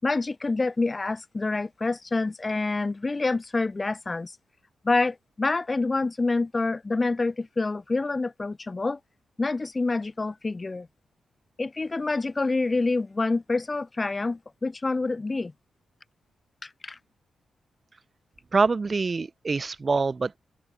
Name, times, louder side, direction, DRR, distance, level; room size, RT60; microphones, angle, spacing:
voice 1, 0.0-4.3 4.8-9.0 9.4-10.9 11.6-15.5 16.6-17.0, left 3 dB, 35° left, 6.5 m, -27 dB
voice 2, 18.5-20.4, right 4 dB, 45° right, 5.7 m, -25 dB
supercardioid pair, 45°, 0 cm